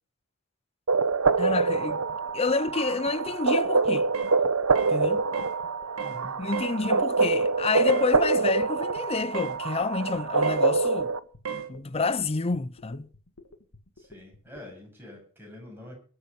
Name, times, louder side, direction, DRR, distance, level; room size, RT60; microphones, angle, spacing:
sound 1, 0.9-14.7, left 2 dB, 70° left, 2.1 m, -51 dB
sound 2, 0.9-11.2, right 4 dB, 90° right, 0.9 m, -25 dB
voice 1, 1.4-2.0 2.3-4.1 4.9-5.2 6.4-11.1 11.5-13.1, left 3 dB, 25° left, 0.6 m, -28 dB
sound 3, 4.1-4.4 4.8-5.0 5.3-5.6 6.0-6.2 6.5-6.8 7.9-8.1 9.3-9.6 10.4-10.7 11.4-11.7, right 7 dB, 70° right, 1.6 m, -34 dB
voice 2, 6.0-6.4 14.0-16.0, left 1 dB, 10° right, 7.5 m, -45 dB
22.5 x 7.9 x 5.4 m
head